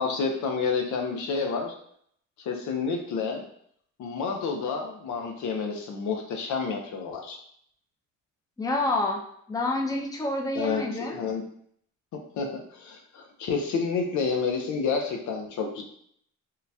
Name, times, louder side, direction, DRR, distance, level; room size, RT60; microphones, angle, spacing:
voice 1, 0.0-1.7 2.4-3.4 4.0-7.4 10.5-11.4 12.1-15.8, left 5 dB, 70° left, 3 dB, 0.7 m, -29 dB
voice 2, 8.6-9.2 9.5-11.2, left 2 dB, 10° left, 1 dB, 0.5 m, -28 dB
3.8 x 2.2 x 2.7 m, 0.66 s
cardioid pair, 90°, 30 cm